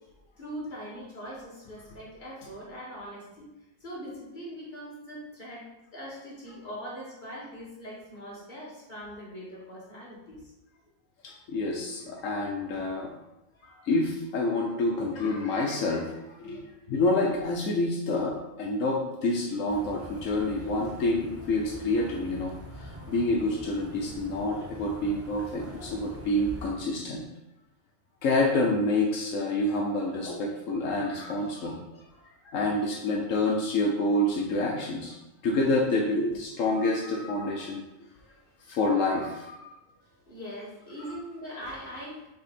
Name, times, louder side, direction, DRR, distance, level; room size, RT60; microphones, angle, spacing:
voice 1, 0.4-3.5 3.8-10.4 13.5-13.9 37.5-37.6 38.0-38.8 40.0-42.3, equal, 35° left, -7 dB, 2.3 m, -42 dB
voice 2, 11.2-13.1 13.9-16.6 16.9-27.2 28.2-32.0 32.4-35.1 35.4-37.8 38.7-39.7 41.0-41.2, left 2 dB, 80° left, -1 dB, 1.2 m, -28 dB
sound 1, 19.7-26.7, equal, 15° right, 0.6 m, -44 dB
6.5 x 3.5 x 4.2 m, 0.96 s
omnidirectional pair, 1.3 m